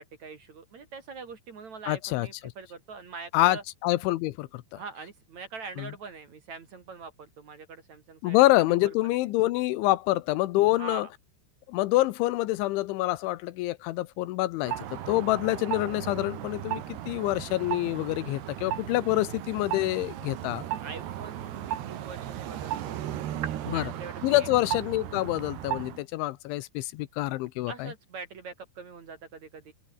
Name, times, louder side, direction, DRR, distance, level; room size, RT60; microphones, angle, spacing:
voice 1, 0.0-3.6 4.7-8.4 8.8-9.2 10.8-11.1 20.8-23.0 23.7-24.5 27.7-29.7, right 5 dB, 45° right, 3.1 m, -43 dB
voice 2, 1.9-2.5 3.3-4.8 5.8-5.9 8.2-11.1 11.7-20.6 23.6-23.9 24.2-27.9, left 17 dB, 80° left, 3.2 m, -26 dB
sound 1, 14.6-26.0, right 11 dB, 65° right, 3.7 m, -36 dB
open air
omnidirectional pair, 5.5 m